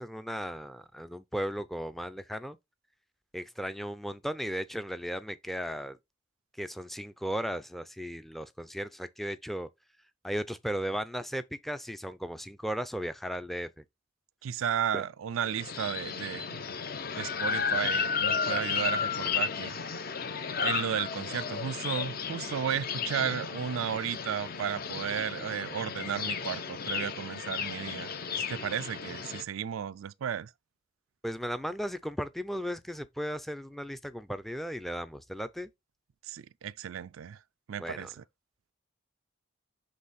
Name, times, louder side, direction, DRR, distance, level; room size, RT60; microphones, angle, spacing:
voice 1, 0.0-2.6 3.3-6.0 6.6-9.7 10.2-13.7 14.9-15.0 31.2-35.7 37.8-38.1, equal, ahead, 0.4 m, -36 dB
voice 2, 14.4-16.6 17.2-19.8 20.6-30.5 36.2-37.4 37.7-38.2, right 8 dB, 80° right, 0.4 m, -34 dB
sound 1, 15.5-29.4, left 6 dB, 45° left, 0.6 m, -33 dB
7.5 x 3.4 x 4.1 m
head